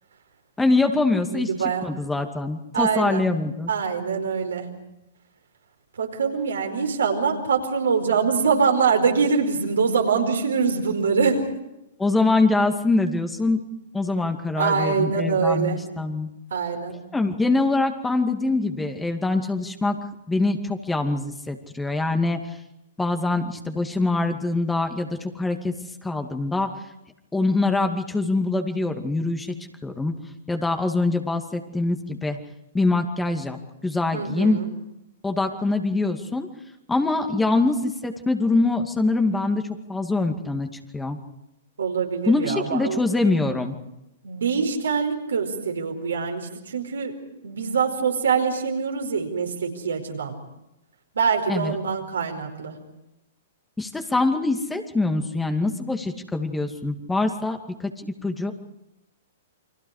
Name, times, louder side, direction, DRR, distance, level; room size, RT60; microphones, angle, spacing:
voice 1, 0.6-1.5 1.8-3.7 12.0-13.6 13.9-16.3 17.1-20.0 20.3-22.4 23.0-25.7 26.0-26.7 27.3-29.5 29.8-30.1 30.5-32.4 32.7-33.6 33.8-34.6 35.2-36.5 36.9-39.6 39.9-40.7 40.9-41.2 42.3-43.7 51.5-51.8 53.8-58.5, left 2 dB, 10° left, 6 dB, 2.3 m, -24 dB
voice 2, 1.3-1.8 2.7-3.3 3.7-4.7 6.0-11.5 14.6-15.8 16.5-17.0 34.1-34.7 41.8-43.0 44.2-47.1 47.4-50.4 51.1-52.7, right 5 dB, 75° right, 3 dB, 4.7 m, -24 dB
29.5 x 24.0 x 4.9 m, 0.88 s
hypercardioid pair, 115°, 0 cm